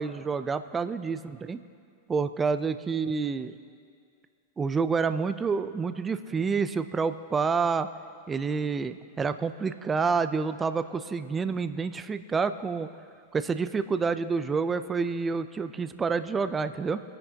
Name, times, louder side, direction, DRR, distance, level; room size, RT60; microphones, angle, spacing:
voice 1, 0.0-1.6 2.1-3.5 4.6-7.9 8.3-12.9 13.3-17.0, right 5 dB, 20° right, 12 dB, 0.5 m, -28 dB
22.5 x 10.5 x 2.9 m, 2.3 s
hypercardioid pair, 105°, 0 cm